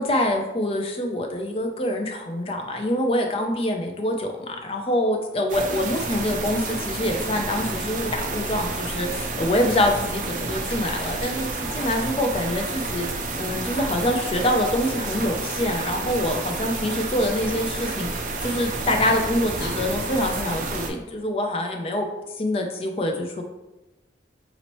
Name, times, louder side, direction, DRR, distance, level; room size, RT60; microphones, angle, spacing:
voice 1, 0.0-18.1 18.4-22.1 22.4-23.4, left 1 dB, 30° left, 3 dB, 0.4 m, -25 dB
sound 1, 5.5-20.9, right 3 dB, 45° right, 0.4 m, -30 dB
Fire, 8.6-11.6 17.5-18.7 19.2-19.3 19.6-20.8, left 2 dB, 65° left, 0.9 m, -46 dB
4.1 x 2.9 x 3.0 m, 1.0 s
head